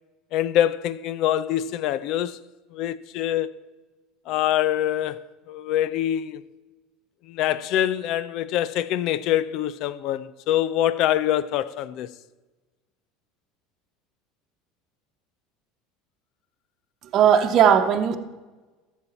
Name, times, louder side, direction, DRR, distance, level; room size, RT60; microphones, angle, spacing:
voice 1, 0.3-2.4 2.7-3.5 4.3-6.4 7.3-12.1, left 11 dB, 60° left, 0.5 m, -25 dB
voice 2, 17.1-18.2, right 8 dB, 50° right, 0.9 m, -17 dB
14.5 x 7.4 x 4.3 m
hypercardioid pair, 80°, 0 cm